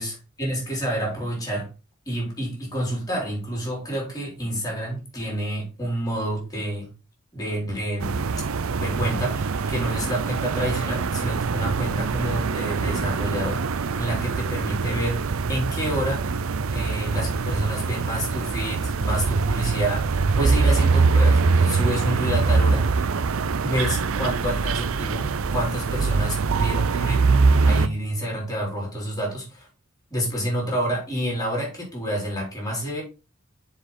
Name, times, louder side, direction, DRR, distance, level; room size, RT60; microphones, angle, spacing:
voice 1, 0.0-1.7 2.1-6.9 7.3-8.2 8.8-16.3 16.7-23.1 23.6-27.3 27.6-29.7 30.1-33.0, equal, 15° left, -2 dB, 4.1 m, -29 dB
sound 1, 8.0-27.9, right 4 dB, 75° right, 0.5 m, -23 dB
7.2 x 5.0 x 4.3 m, 0.31 s
head